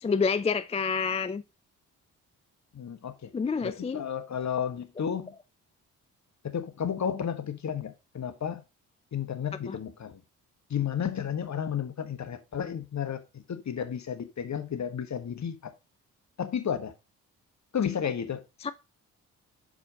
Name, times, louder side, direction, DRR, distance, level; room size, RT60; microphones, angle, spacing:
voice 1, 0.0-1.4 3.3-4.0 9.7-9.8 18.6-18.7, left 5 dB, 15° left, 0.4 m, -28 dB
voice 2, 2.7-3.3 3.6-5.3 6.4-8.6 9.1-10.2 10.7-15.7 16.4-16.9 17.7-18.4, left 8 dB, 45° left, 1.3 m, -32 dB
6.1 x 4.9 x 5.0 m
hypercardioid pair, 45°, 41 cm